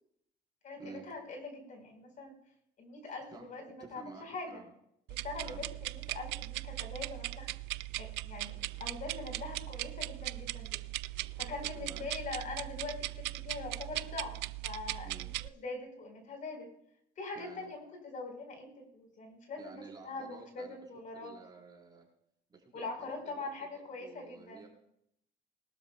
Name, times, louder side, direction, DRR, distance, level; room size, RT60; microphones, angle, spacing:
voice 1, 0.6-2.3 2.8-4.6 5.1-7.5 8.0-8.5 8.8-10.8 11.4-14.3 14.6-15.1 15.4-16.7 17.2-21.3 22.7-24.7, left 3 dB, 50° left, 3 dB, 4.4 m, -43 dB
voice 2, 3.8-4.7 5.4-5.6 11.4-11.5 11.7-12.0 15.0-15.3 17.3-17.7 19.6-20.8 21.1-22.1 22.5-24.7, right 4 dB, 25° right, -2 dB, 4.5 m, -52 dB
sound 1, 5.1-15.5, right 19 dB, 85° right, 0.4 m, -39 dB
21.0 x 12.5 x 2.3 m, 0.73 s
cardioid pair, 110°, 17 cm